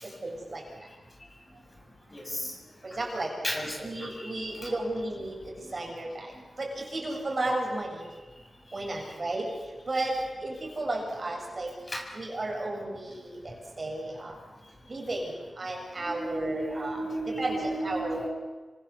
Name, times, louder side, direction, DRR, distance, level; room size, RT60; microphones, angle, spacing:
voice 1, 0.0-0.6 2.8-3.3 3.8-8.1 8.7-9.5 9.9-11.7 12.1-14.4 14.9-18.3, right 2 dB, 40° right, 0 dB, 6.9 m, -33 dB
voice 2, 2.1-2.5 3.4-4.5 11.9-12.0 16.0-18.3, right 1 dB, 30° left, 1 dB, 7.0 m, -34 dB
27.5 x 24.5 x 7.1 m, 1.3 s
wide cardioid pair, 100°, 0 cm